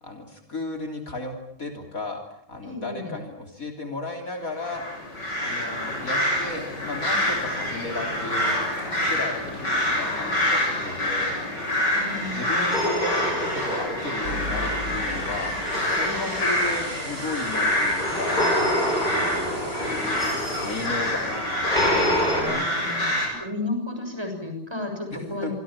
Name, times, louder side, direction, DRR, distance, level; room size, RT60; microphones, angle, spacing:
voice 1, 0.0-4.9 5.4-11.4 12.1-18.5 19.0-19.8 20.5-22.7 25.1-25.5, left 2 dB, 50° left, 4 dB, 3.7 m, -35 dB
voice 2, 2.6-3.2 11.9-12.8 22.3-23.1 23.4-25.5, left 2 dB, 15° right, 4 dB, 6.9 m, -33 dB
sound 1, 4.6-23.3, left 1 dB, 75° left, 8.1 m, -27 dB
sound 2, 12.7-14.7 15.6-22.4, equal, 25° left, 8.3 m, -28 dB
sound 3, 14.2-20.9, right 1 dB, 55° right, 5.3 m, -38 dB
27.0 x 24.5 x 7.4 m, 0.66 s
omnidirectional pair, 1.9 m